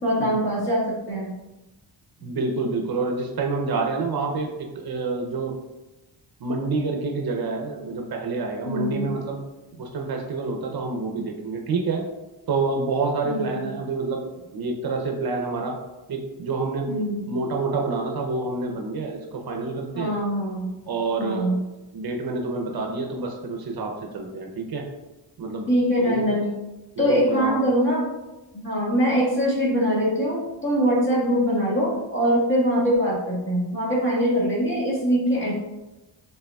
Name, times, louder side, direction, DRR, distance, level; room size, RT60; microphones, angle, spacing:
voice 1, 0.0-1.3 8.6-9.1 13.2-13.7 16.9-17.3 19.9-20.7 21.2-21.5 25.7-26.5 27.0-28.1 28.5-35.5, equal, 25° left, -6 dB, 1.5 m, -23 dB
voice 2, 2.2-5.6 6.4-9.4 9.8-12.0 12.5-15.8 16.1-16.9 17.3-20.1 20.9-21.5 21.9-24.8 25.4-25.7 26.0-26.3 27.0-27.6, right 3 dB, 55° right, 2 dB, 0.6 m, -28 dB
6.5 x 3.5 x 2.3 m, 1.0 s
wide cardioid pair, 165°, 45 cm